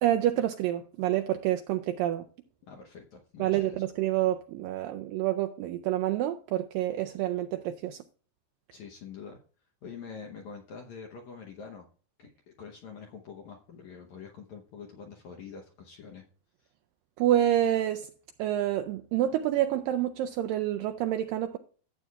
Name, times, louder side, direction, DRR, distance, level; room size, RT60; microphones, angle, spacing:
voice 1, 0.0-2.2 3.4-8.0 17.2-18.1 18.4-21.6, right 12 dB, 85° right, 2.0 m, -28 dB
voice 2, 2.6-3.9 8.7-9.4 9.8-11.9 12.2-16.2 16.6-16.7, left 6 dB, 70° left, 1.7 m, -45 dB
14.0 x 8.2 x 2.3 m
omnidirectional pair, 4.5 m